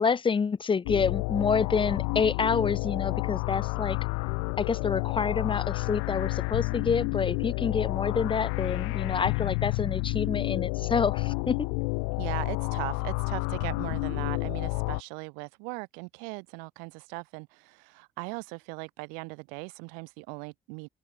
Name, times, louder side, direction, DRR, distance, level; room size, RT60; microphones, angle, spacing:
voice 1, 0.0-4.0 4.6-11.7, left 5 dB, 40° left, 2.4 m, -28 dB
sound 1, 0.8-15.0, left 39 dB, 85° left, 0.9 m, -30 dB
voice 2, 12.1-20.9, right 37 dB, 80° right, 1.4 m, -39 dB
open air
hypercardioid pair, 50°, 13 cm